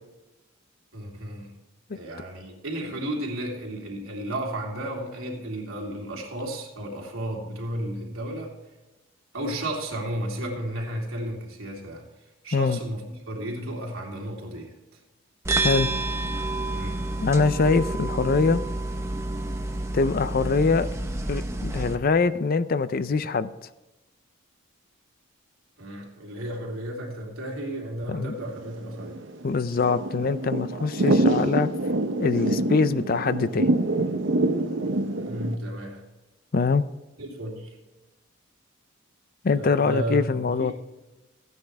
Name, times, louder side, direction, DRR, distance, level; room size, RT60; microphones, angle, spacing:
voice 1, 0.9-1.5 1.9-8.5 9.3-12.0 12.4-15.0 16.7-17.0 25.8-29.2 35.2-36.0 37.2-37.8 39.6-40.7, right 1 dB, 75° right, -1 dB, 3.0 m, -33 dB
sound 1, 15.4-21.9, right 2 dB, 15° right, 0.8 m, -29 dB
voice 2, 17.2-18.6 19.9-20.9 21.3-23.5 28.1-28.3 29.4-31.7 32.2-33.7 36.5-36.8 39.4-40.7, left 4 dB, 45° left, 14 dB, 0.4 m, -23 dB
Thunder / Rain, 28.5-35.6, right 2 dB, 60° right, 0.8 m, -26 dB
15.0 x 9.5 x 3.4 m, 1.1 s
head